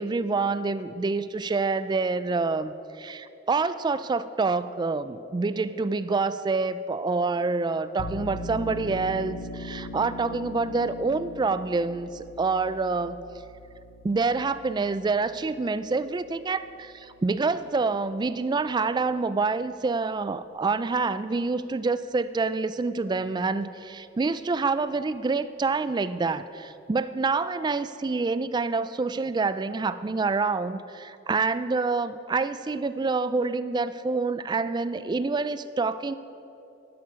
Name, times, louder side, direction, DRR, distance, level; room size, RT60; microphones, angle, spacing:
voice 1, 0.0-13.2 14.0-36.2, right 4 dB, 20° right, 14 dB, 0.3 m, -27 dB
sound 1, 8.0-19.3, left 2 dB, 70° left, 0.8 m, -41 dB
11.5 x 11.0 x 5.2 m, 2.8 s
head